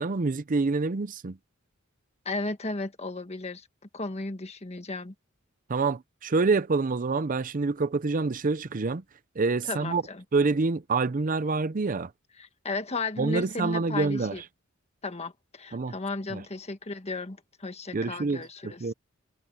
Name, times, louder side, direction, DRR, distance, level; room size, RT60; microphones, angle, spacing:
voice 1, 0.0-1.4 5.7-9.0 9.4-10.0 10.3-12.1 13.2-14.4 15.7-15.9 16.3-16.4 17.9-18.9, right 3 dB, 40° right, 0.6 m, -27 dB
voice 2, 2.2-3.7 3.9-5.1 9.6-10.2 12.4-14.4 15.0-18.8, left 3 dB, 30° left, 1.5 m, -34 dB
head